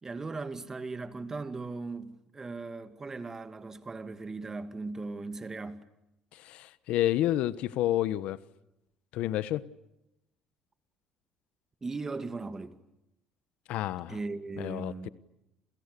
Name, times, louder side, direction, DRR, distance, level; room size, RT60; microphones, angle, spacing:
voice 1, 0.0-5.8 11.8-12.8 14.1-15.1, right 3 dB, 25° right, 2.4 m, -38 dB
voice 2, 6.3-8.4 9.1-9.6 13.7-14.2 14.6-15.1, left 13 dB, 75° left, 1.2 m, -29 dB
30.0 x 28.5 x 6.9 m
cardioid pair, 105°, 2 cm